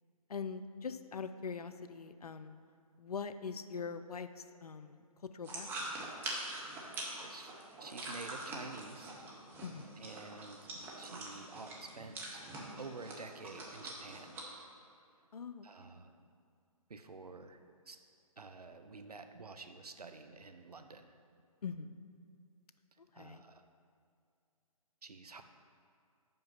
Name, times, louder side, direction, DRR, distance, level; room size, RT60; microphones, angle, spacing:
voice 1, 0.3-2.6 3.0-5.0 5.3-5.9 9.6-9.9 15.3-15.9 21.6-21.9 23.2-23.4, left 5 dB, 80° left, 10 dB, 0.5 m, -43 dB
sound 1, 5.4-14.4, right 2 dB, 10° right, 0.7 m, -44 dB
voice 2, 7.2-7.5 7.8-9.1 10.0-10.7 11.0-12.5 12.8-14.4 15.6-16.3 16.9-17.6 17.9-18.0 18.4-21.2 23.1-23.6 25.0-25.4, right 3 dB, 90° right, 7 dB, 0.6 m, -49 dB
5.5 x 5.2 x 5.6 m, 2.3 s
figure-of-eight pair, 140°, 19 cm